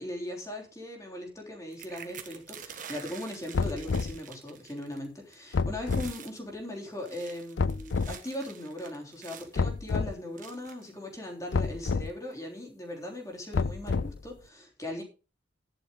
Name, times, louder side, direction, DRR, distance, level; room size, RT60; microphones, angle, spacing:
voice 1, 0.0-15.0, left 1 dB, 15° left, 0 dB, 3.3 m, -39 dB
sound 1, 1.7-5.1 5.3-5.6 5.8-6.4 6.9-9.6 10.4-10.9 11.6-11.7 12.1-12.3, right 8 dB, 40° right, 1.5 m, -47 dB
sound 2, 3.5-4.2 5.5-6.1 7.6-8.1 9.6-10.1 11.5-12.1 13.5-14.3, left 4 dB, 70° left, 0.5 m, -29 dB
12.0 x 10.5 x 3.8 m, 0.33 s
head